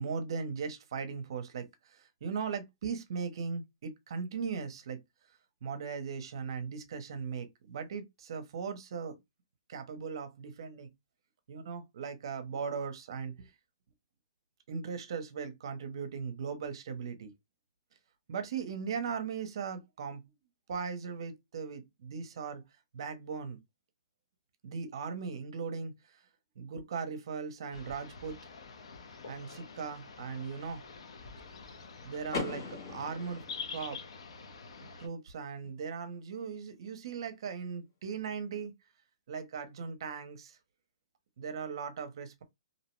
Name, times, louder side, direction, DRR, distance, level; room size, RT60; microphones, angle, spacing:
voice 1, 0.0-5.0 5.6-9.2 9.7-10.9 11.5-13.5 14.7-17.3 18.3-20.3 20.7-22.6 22.9-23.6 24.6-25.9 26.6-28.4 29.3-30.8 32.0-33.4 33.7-34.0 35.0-38.7 39.3-40.6 41.4-42.4, right 6 dB, 50° right, 0.6 m, -38 dB
sound 1, 27.7-35.1, left 5 dB, 65° left, 0.6 m, -47 dB
Car / Door, 32.3-34.2, left 4 dB, 50° left, 1.4 m, -39 dB
2.6 x 2.1 x 3.0 m
hypercardioid pair, 170°, 3 cm